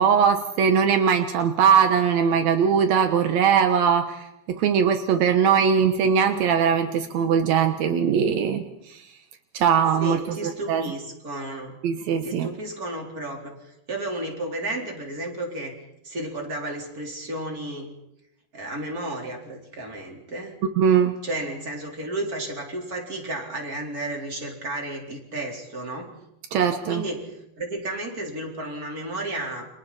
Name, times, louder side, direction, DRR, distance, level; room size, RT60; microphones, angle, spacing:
voice 1, 0.0-4.2 4.6-9.0 9.5-10.8 11.8-12.5 20.8-21.1 26.5-27.0, right 7 dB, 75° right, 7 dB, 1.6 m, -20 dB
voice 2, 10.0-11.8 12.2-15.7 16.0-17.9 18.5-20.6 21.2-26.1 26.9-29.7, right 1 dB, 20° right, 1 dB, 4.0 m, -33 dB
30.0 x 27.5 x 4.2 m, 0.83 s
omnidirectional pair, 4.8 m